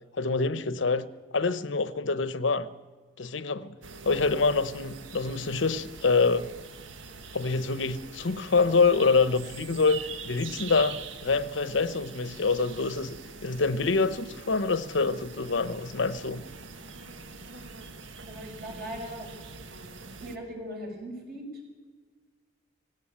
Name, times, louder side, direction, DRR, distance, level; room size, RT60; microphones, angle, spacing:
voice 1, 0.2-1.1 1.3-2.7 3.2-3.7 4.0-6.5 7.3-16.4, left 4 dB, 75° left, 0.9 m, -26 dB
sound 1, 3.8-20.4, right 4 dB, 80° right, 1.3 m, -44 dB
voice 2, 18.3-19.3 20.2-21.4, equal, 55° right, 6.7 m, -39 dB
18.0 x 17.0 x 8.8 m
head